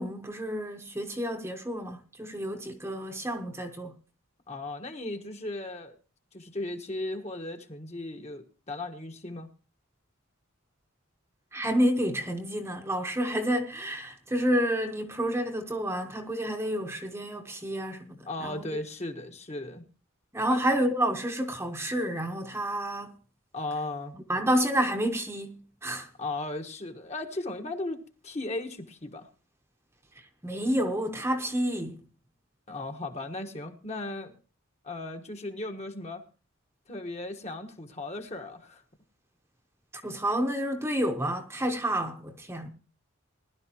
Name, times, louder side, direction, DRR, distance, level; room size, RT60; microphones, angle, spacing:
voice 1, 0.0-4.0 11.5-18.8 20.3-23.1 24.3-26.1 30.2-32.0 39.9-42.7, equal, 10° right, 1.0 m, -29 dB
voice 2, 4.5-6.0 6.3-9.5 18.2-19.8 20.5-20.6 23.5-24.2 26.2-29.3 32.7-34.3 34.8-36.2 36.9-38.8, left 2 dB, 30° left, 1.3 m, -36 dB
20.0 x 11.5 x 3.0 m
head